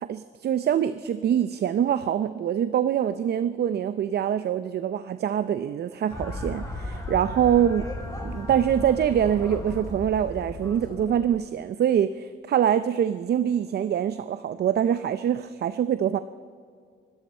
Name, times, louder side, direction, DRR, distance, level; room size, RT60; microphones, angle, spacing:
voice 1, 0.0-7.8 8.2-16.2, right 9 dB, 55° right, 13 dB, 0.6 m, -24 dB
sound 1, 6.1-11.3, left 1 dB, 15° left, 3.7 m, -35 dB
25.0 x 13.0 x 4.4 m, 2.1 s
cardioid pair, 90°, 20 cm